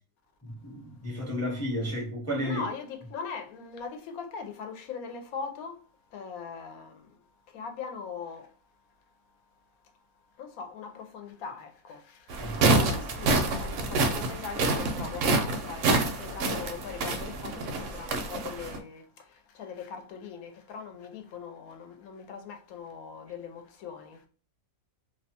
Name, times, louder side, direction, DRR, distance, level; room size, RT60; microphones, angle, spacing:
voice 1, 0.4-2.6 12.4-12.6, left 1 dB, 20° left, 0.4 m, -32 dB
voice 2, 2.4-8.6 9.8-9.9 10.3-24.3, left 6 dB, 80° left, 1.0 m, -41 dB
sound 1, 12.3-18.8, right 3 dB, 70° right, 0.8 m, -27 dB
2.7 x 2.1 x 2.7 m
omnidirectional pair, 1.5 m